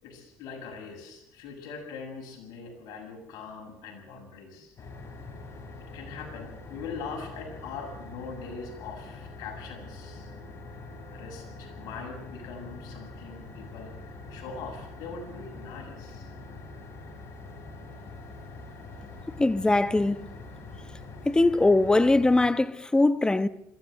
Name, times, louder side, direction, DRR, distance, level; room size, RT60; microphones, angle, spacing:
voice 1, 0.0-4.7 5.8-10.3 11.1-16.3, left 5 dB, 70° left, 7.7 m, -42 dB
sound 1, 4.8-22.5, left 3 dB, 45° left, 5.3 m, -44 dB
voice 2, 19.4-20.3 21.2-23.5, left 2 dB, 10° left, 1.0 m, -21 dB
22.5 x 15.5 x 7.9 m
supercardioid pair, 90°, 7 cm